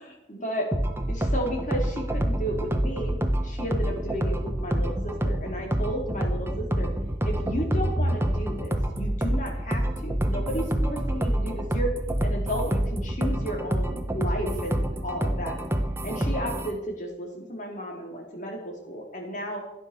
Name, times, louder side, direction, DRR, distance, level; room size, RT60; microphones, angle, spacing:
voice 1, 0.1-0.7 1.1-3.2 3.4-6.9 7.2-11.9 12.2-15.6 16.0-19.6, equal, 45° left, 1 dB, 4.1 m, -33 dB
sound 1, 0.7-16.7, right 1 dB, 15° right, 1.3 m, -27 dB
15.5 x 10.0 x 6.9 m, 0.91 s
head